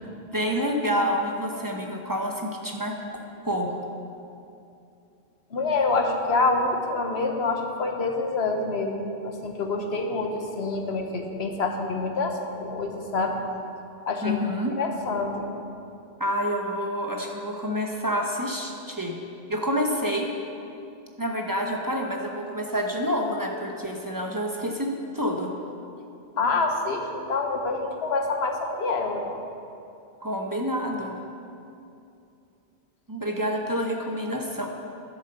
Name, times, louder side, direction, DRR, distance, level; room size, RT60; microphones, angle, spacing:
voice 1, 0.3-3.0 3.4-3.8 14.2-14.7 16.2-19.2 19.5-20.3 21.2-25.5 30.2-31.2 33.1-34.7, equal, 20° right, 1 dB, 0.9 m, -28 dB
voice 2, 5.5-13.4 14.1-14.4 14.8-15.5 26.4-29.4, left 3 dB, 80° left, 3 dB, 1.3 m, -26 dB
10.5 x 7.5 x 6.8 m, 2.6 s
omnidirectional pair, 1.1 m